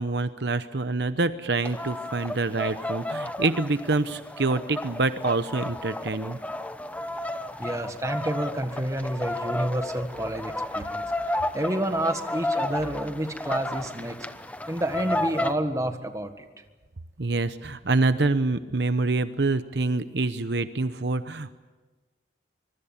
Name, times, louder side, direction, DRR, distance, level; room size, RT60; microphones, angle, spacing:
voice 1, 0.0-6.4 17.2-21.6, right 3 dB, 65° right, 11 dB, 0.9 m, -26 dB
sound 1, 1.6-15.5, left 1 dB, 10° left, 0.9 m, -32 dB
voice 2, 7.6-14.3 14.7-16.5, right 1 dB, 15° right, 7 dB, 1.5 m, -29 dB
25.0 x 23.0 x 7.3 m, 1.3 s
head